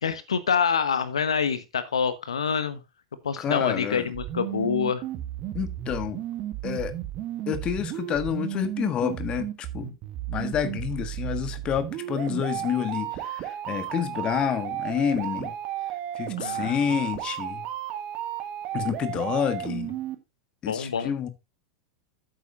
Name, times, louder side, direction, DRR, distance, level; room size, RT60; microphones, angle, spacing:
voice 1, 0.0-2.8 3.2-5.0 16.4-17.0 20.7-21.1, left 6 dB, 75° left, 1.0 m, -26 dB
voice 2, 3.4-4.1 5.5-6.2 6.6-6.9 7.5-9.9 10.3-15.5 16.2-17.6 18.7-19.9 20.6-21.3, left 9 dB, 35° left, 1.6 m, -28 dB
sound 1, 4.1-20.2, right 12 dB, 45° right, 1.8 m, -33 dB
11.5 x 9.0 x 2.5 m
figure-of-eight pair, 85°, 3 cm